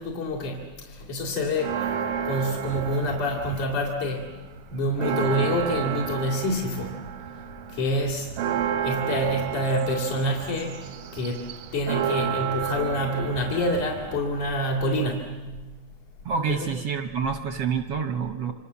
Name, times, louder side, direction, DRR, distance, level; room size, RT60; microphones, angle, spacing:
voice 1, 0.0-4.3 4.7-7.0 7.7-8.4 8.8-10.7 11.1-11.5 11.7-15.4 16.5-16.7, left 1 dB, 65° left, -5 dB, 4.0 m, -27 dB
Church bell, 1.6-4.0 4.3-4.4 4.7-14.8, right 9 dB, 90° right, 2.8 m, -31 dB
voice 2, 16.2-18.5, right 6 dB, 70° right, 7 dB, 1.5 m, -27 dB
28.5 x 25.5 x 7.1 m, 1.3 s
omnidirectional pair, 3.7 m